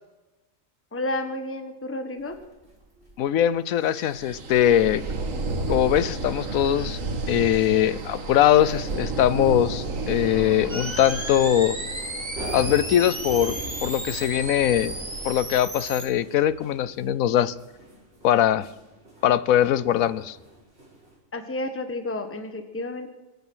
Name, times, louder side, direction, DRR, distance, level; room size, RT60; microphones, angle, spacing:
voice 1, 0.9-2.4 21.3-23.1, left 2 dB, 10° left, 7 dB, 1.2 m, -31 dB
sound 1, 2.2-21.2, right 1 dB, 50° right, 4.9 m, -46 dB
voice 2, 3.2-5.0 5.7-7.0 7.3-11.8 12.5-15.0 15.2-17.5 18.2-18.7 19.2-20.4, left 11 dB, 85° left, 17 dB, 1.1 m, -21 dB
sound 2, 3.9-15.7, right 3 dB, 70° right, 1.9 m, -33 dB
sound 3, 10.7-16.1, right 1 dB, 20° right, 2.7 m, -34 dB
23.5 x 9.6 x 6.2 m, 1.1 s
omnidirectional pair, 1.4 m